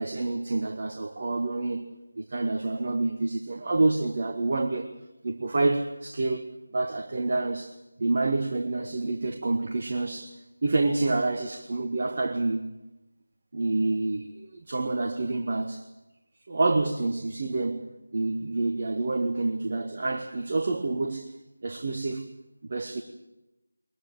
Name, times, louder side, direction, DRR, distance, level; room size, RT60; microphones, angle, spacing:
voice 1, 0.0-1.9 2.2-4.9 5.2-6.5 6.7-10.4 10.6-12.7 13.5-15.8 16.5-21.3 21.6-22.2 22.7-23.0, right 2 dB, 35° right, 1.5 m, -28 dB
22.0 x 21.5 x 7.5 m
figure-of-eight pair, 165°, 0 cm